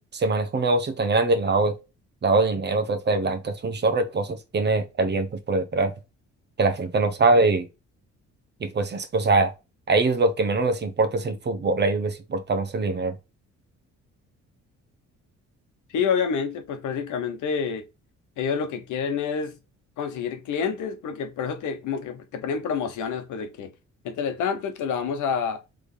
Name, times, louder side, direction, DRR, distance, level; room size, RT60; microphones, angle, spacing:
voice 1, 0.1-1.7 2.2-5.9 6.6-7.7 8.6-9.5 9.9-13.2, right 3 dB, 35° right, 0.9 m, -23 dB
voice 2, 15.9-17.8 18.4-19.6 20.0-23.7 24.0-25.6, left 6 dB, 80° left, 1.0 m, -28 dB
3.8 x 3.3 x 3.2 m
cardioid pair, 90°, 30 cm